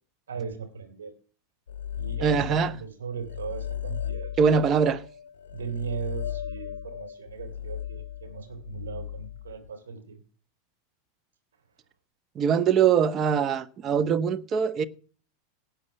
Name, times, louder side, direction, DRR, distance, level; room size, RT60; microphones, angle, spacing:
voice 1, 0.3-1.1 1.9-4.7 5.5-10.2, right 6 dB, 70° right, 3.3 m, -38 dB
sound 1, 1.7-2.8 3.1-9.7, left 10 dB, 65° left, 0.6 m, -36 dB
voice 2, 2.2-2.8 4.4-5.0 12.3-14.9, right 7 dB, 30° right, 1.0 m, -22 dB
17.5 x 8.6 x 5.8 m
figure-of-eight pair, 85°, 0 cm